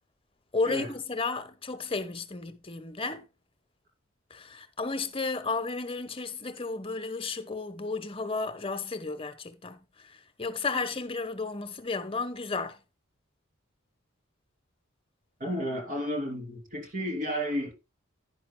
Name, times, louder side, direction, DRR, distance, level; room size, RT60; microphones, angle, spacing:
voice 1, 0.5-3.3 4.3-12.8, left 3 dB, 25° left, 1.1 m, -33 dB
voice 2, 15.4-17.7, equal, 40° right, 3.2 m, -32 dB
10.5 x 10.5 x 2.2 m
head